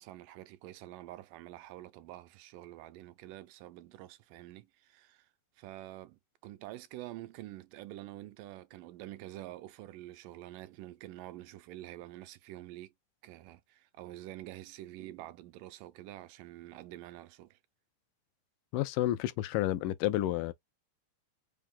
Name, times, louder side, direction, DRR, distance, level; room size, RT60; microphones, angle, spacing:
voice 1, 0.0-5.3 5.6-12.9 13.2-17.6, right 15 dB, 85° right, 2.3 m, -47 dB
voice 2, 18.7-20.5, left 14 dB, 85° left, 2.2 m, -30 dB
5.6 x 2.3 x 3.6 m
omnidirectional pair, 3.9 m